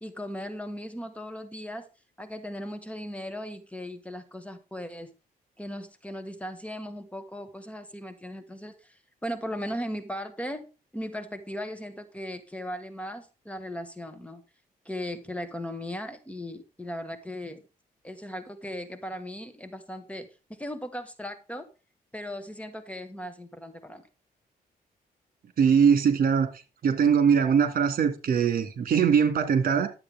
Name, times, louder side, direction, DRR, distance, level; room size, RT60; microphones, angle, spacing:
voice 1, 0.0-1.9 2.2-5.1 5.6-14.4 14.8-17.6 18.0-20.3 20.6-21.7 22.1-24.0, equal, 10° left, 1.6 m, -37 dB
voice 2, 25.6-26.5 26.8-29.9, right 7 dB, 65° right, 2.2 m, -21 dB
12.0 x 8.0 x 3.6 m
cardioid pair, 105°, 16 cm